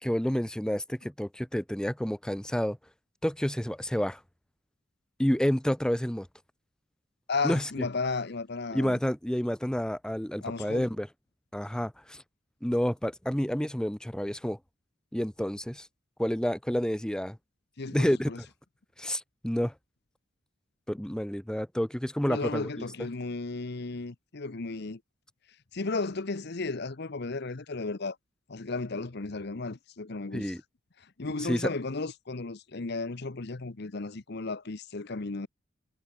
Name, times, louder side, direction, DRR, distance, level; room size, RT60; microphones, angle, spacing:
voice 1, 0.0-2.8 3.2-4.2 5.2-6.3 7.4-7.7 8.7-11.1 11.5-12.2 12.6-14.6 15.1-15.9 16.2-17.4 17.9-18.5 19.0-19.7 20.9-22.9 30.3-30.6 31.4-31.7, equal, 5° left, 0.5 m, -29 dB
voice 2, 7.3-9.0 10.4-10.9 17.8-18.4 22.3-25.0 25.7-28.2 28.5-30.5 31.2-35.5, left 3 dB, 55° left, 0.9 m, -34 dB
head